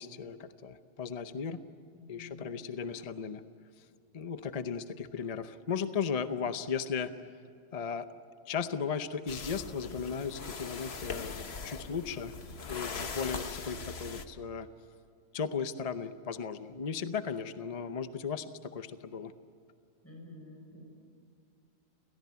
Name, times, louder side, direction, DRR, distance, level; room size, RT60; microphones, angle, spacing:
voice 1, 0.0-1.6 2.1-3.4 4.1-7.1 7.7-8.1 8.5-12.3 12.7-14.7 15.3-19.3, left 6 dB, 35° left, 11 dB, 0.7 m, -36 dB
voice 2, 1.9-2.5 20.0-20.8, left 2 dB, 10° left, 0 dB, 6.1 m, -50 dB
sound 1, 9.3-14.3, left 5 dB, 55° left, 1.4 m, -41 dB
29.0 x 17.5 x 9.5 m, 2.5 s
omnidirectional pair, 1.3 m